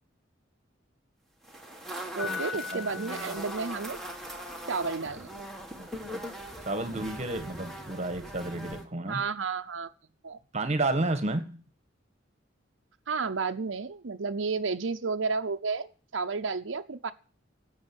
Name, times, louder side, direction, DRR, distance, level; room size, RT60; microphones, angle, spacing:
sound 1, 1.4-8.8, right 1 dB, ahead, 2.0 m, -40 dB
Piano, 2.2-4.3, left 6 dB, 80° left, 4.4 m, -40 dB
voice 1, 2.2-4.0 4.7-5.3 9.1-9.9 10.2-10.4 13.1-17.1, right 4 dB, 75° right, 6 dB, 0.7 m, -32 dB
voice 2, 2.7-3.3 5.7-5.9 6.1-6.3 6.6-9.2 10.5-11.6, right 2 dB, 35° right, 8 dB, 1.6 m, -32 dB
13.0 x 8.2 x 9.8 m, 0.40 s
head